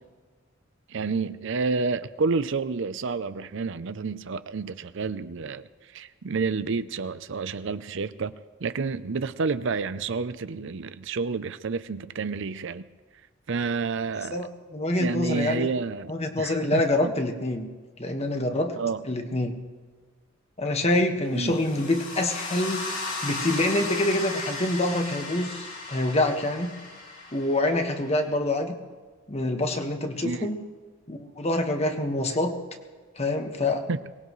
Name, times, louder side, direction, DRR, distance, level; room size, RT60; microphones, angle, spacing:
voice 1, 0.9-8.3 8.6-12.9 13.5-14.4 15.0-17.1 18.8-19.1 21.3-21.6 30.2-30.5 33.9-34.0, right 4 dB, 65° right, 14 dB, 0.5 m, -29 dB
voice 2, 14.3-15.7 16.1-17.7 18.0-18.8 19.1-19.5 20.6-22.8 23.2-26.7 27.3-28.7 29.3-30.6 31.1-32.5 33.2-33.8, left 1 dB, 30° left, 4 dB, 1.5 m, -26 dB
sound 1, 21.4-28.3, left 3 dB, 80° left, 7.0 m, -36 dB
23.0 x 19.0 x 3.2 m, 1.4 s
head